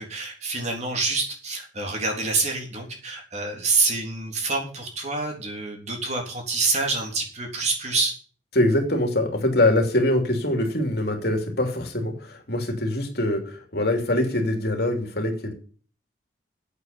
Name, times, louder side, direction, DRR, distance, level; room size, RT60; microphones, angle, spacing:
voice 1, 0.0-8.1, right 3 dB, 35° right, 2 dB, 3.6 m, -27 dB
voice 2, 8.5-15.5, left 1 dB, 55° left, 4 dB, 3.2 m, -23 dB
9.2 x 8.6 x 9.6 m, 0.42 s
head